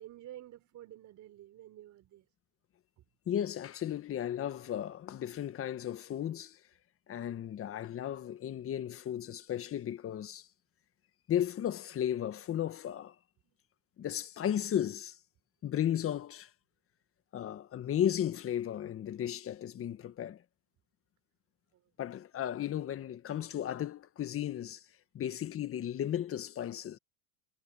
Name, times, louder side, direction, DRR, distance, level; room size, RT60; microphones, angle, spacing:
voice 1, 0.0-2.3 3.0-3.1 13.4-13.5 21.7-21.9 25.2-25.3, right 13 dB, 45° right, 4.0 m, -51 dB
voice 2, 3.3-6.6 7.1-10.5 11.3-13.1 14.0-15.2 15.6-16.5 17.3-20.4 22.0-24.8 25.1-27.0, left 10 dB, 35° left, 1.6 m, -35 dB
supercardioid pair, 120°, 39 cm